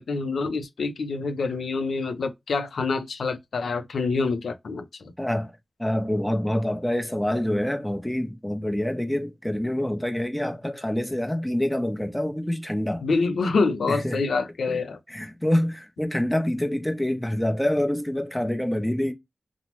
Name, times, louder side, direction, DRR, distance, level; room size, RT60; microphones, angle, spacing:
voice 1, 0.0-5.1 13.0-15.0, left 4 dB, 85° left, 0.4 m, -26 dB
voice 2, 5.2-5.5 5.8-13.0 13.9-14.2 14.7-14.8 15.1-19.1, left 1 dB, 10° left, 0.6 m, -26 dB
2.9 x 2.0 x 3.0 m
cardioid pair, 45°, 0 cm